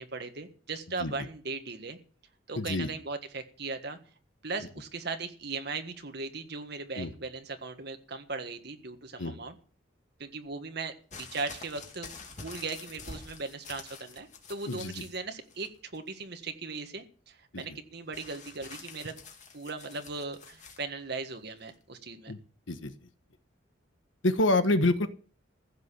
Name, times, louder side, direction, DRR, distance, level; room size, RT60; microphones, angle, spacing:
voice 1, 0.0-2.0 2.5-4.0 4.4-9.5 10.2-12.1 12.4-19.1 19.5-22.3, right 4 dB, 55° right, 6 dB, 1.6 m, -38 dB
voice 2, 2.5-2.9 7.0-7.1 9.2-9.4 14.7-15.0 17.5-17.8 22.3-22.4 22.7-22.9 24.2-25.1, left 2 dB, 80° left, 10 dB, 1.3 m, -27 dB
sound 1, 11.1-15.2 15.5-16.1 18.1-20.8 21.7-21.8, left 4 dB, 40° left, 2.5 m, -47 dB
15.5 x 6.8 x 8.4 m, 0.42 s
head